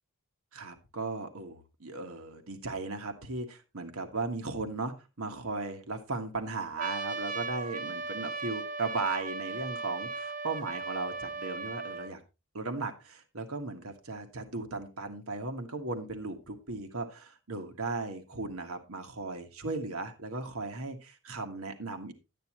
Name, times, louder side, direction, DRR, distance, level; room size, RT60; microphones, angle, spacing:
voice 1, 0.5-4.9 5.2-12.2 12.5-22.1, right 3 dB, 80° right, 6 dB, 1.5 m, -36 dB
Trumpet, 6.8-12.1, right 3 dB, 40° right, 0.7 m, -37 dB
11.5 x 9.3 x 3.0 m, 0.28 s
head